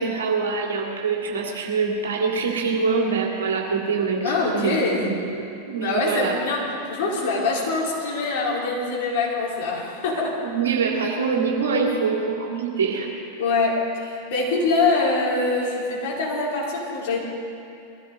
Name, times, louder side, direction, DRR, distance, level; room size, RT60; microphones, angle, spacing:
voice 1, 0.0-6.4 10.4-13.1, right 5 dB, 65° right, -1 dB, 2.6 m, -24 dB
voice 2, 4.2-5.1 5.8-10.5 13.4-17.2, left 3 dB, 50° left, -4 dB, 4.6 m, -24 dB
21.5 x 15.5 x 4.1 m, 2.7 s
figure-of-eight pair, 90°, 0 cm